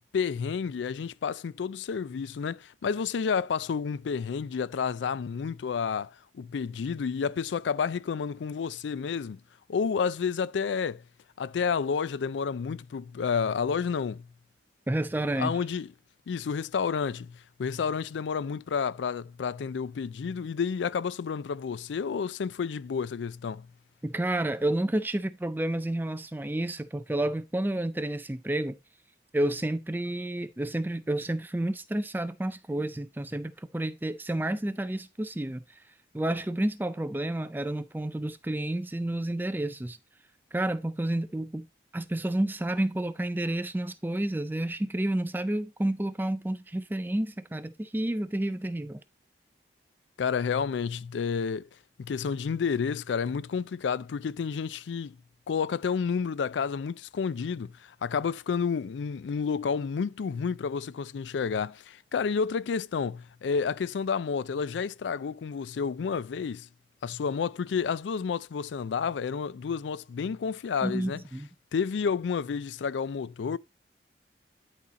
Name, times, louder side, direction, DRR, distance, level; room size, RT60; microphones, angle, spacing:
voice 1, 0.1-9.4 9.7-11.0 11.4-14.3 15.4-15.9 16.3-23.7 50.2-51.7 52.0-55.2 55.5-57.7 58.0-66.7 67.0-71.2 71.7-73.6, left 6 dB, 85° left, 0.4 m, -30 dB
voice 2, 14.9-15.6 24.0-28.8 29.3-35.6 36.1-40.0 40.5-41.7 41.9-49.0 70.8-71.5, right 1 dB, 10° right, 0.4 m, -30 dB
11.0 x 4.2 x 4.1 m
head